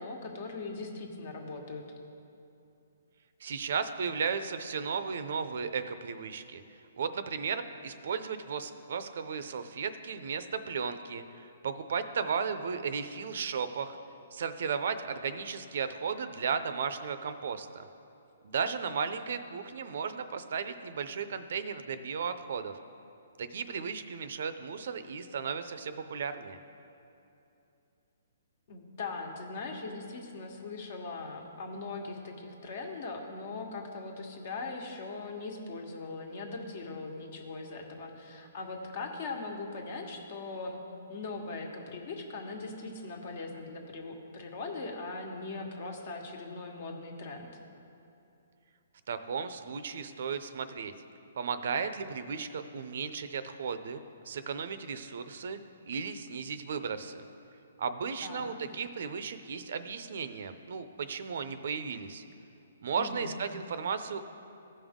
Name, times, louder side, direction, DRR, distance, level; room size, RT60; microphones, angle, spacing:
voice 1, 0.0-1.8 28.7-40.8 41.1-47.5 58.2-58.7 63.0-63.3, left 3 dB, 50° left, 2 dB, 1.3 m, -40 dB
voice 2, 3.4-6.6 7.0-14.0 14.3-17.9 18.4-22.7 23.4-26.6 49.1-50.9 51.4-55.6 55.9-57.2 57.8-62.2 62.8-64.2, right 6 dB, 65° right, 11 dB, 0.6 m, -35 dB
15.5 x 5.3 x 3.7 m, 2.8 s
hypercardioid pair, 150°, 0 cm